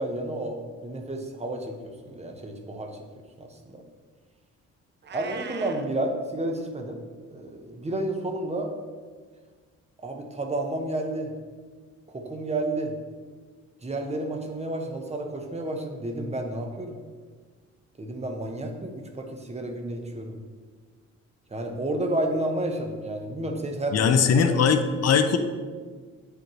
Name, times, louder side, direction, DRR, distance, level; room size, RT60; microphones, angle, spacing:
voice 1, 0.0-3.0 3.4-3.8 5.1-7.0 7.3-8.7 10.0-11.3 12.1-13.0 13.8-17.0 18.0-20.4 21.5-24.1 24.5-24.8, right 1 dB, 20° right, 3 dB, 1.0 m, -31 dB
Meow, 5.0-5.9, right 6 dB, 35° right, 0.5 m, -39 dB
voice 2, 23.9-25.4, left 6 dB, 55° left, 8 dB, 0.7 m, -20 dB
8.3 x 5.1 x 3.1 m, 1.5 s
cardioid pair, 90°, 30 cm